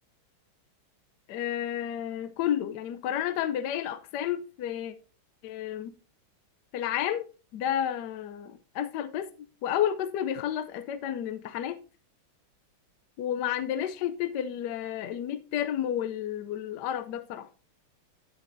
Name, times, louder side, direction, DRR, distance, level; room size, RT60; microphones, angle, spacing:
voice 1, 1.3-4.9 5.4-6.0 6.7-7.2 7.5-9.3 9.6-11.8 13.2-17.5, left 10 dB, 75° left, 1.0 m, -31 dB
9.7 x 8.9 x 2.6 m
omnidirectional pair, 2.2 m